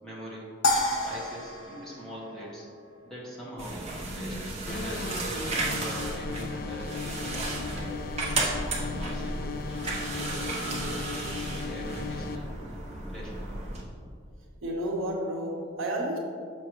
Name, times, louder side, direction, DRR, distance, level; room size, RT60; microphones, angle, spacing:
voice 1, 0.0-2.7 3.0-3.8 4.1-5.1 5.4-7.9 8.6-9.5 9.9-12.5 13.1-13.6, equal, 5° left, -8 dB, 1.4 m, -42 dB
sound 1, 0.6-3.0, left 2 dB, 75° left, 0.8 m, -30 dB
sound 2, 3.6-13.8, right 2 dB, 30° right, 0.8 m, -33 dB
sound 3, 4.7-12.4, left 5 dB, 45° left, 0.3 m, -37 dB
voice 2, 14.6-16.2, right 1 dB, 80° right, -1 dB, 1.0 m, -31 dB
6.3 x 6.2 x 3.0 m, 2.3 s
head